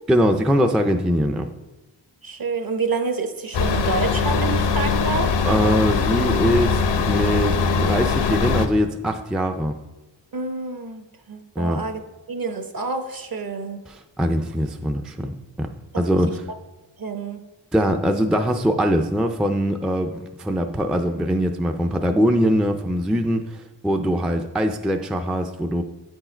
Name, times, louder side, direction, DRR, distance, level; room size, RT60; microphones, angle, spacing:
voice 1, 0.1-1.4 5.4-9.7 11.6-11.8 13.9-15.7 16.0-16.4 17.7-25.8, equal, ahead, 4 dB, 0.3 m, -22 dB
voice 2, 2.2-5.3 10.3-12.0 12.3-13.8 15.9-16.0 17.0-17.4, right 4 dB, 50° right, 7 dB, 0.9 m, -28 dB
sound 1, 3.5-8.7, left 5 dB, 65° left, 0.7 m, -21 dB
9.0 x 4.6 x 4.4 m, 1.1 s
wide cardioid pair, 95°, 45 cm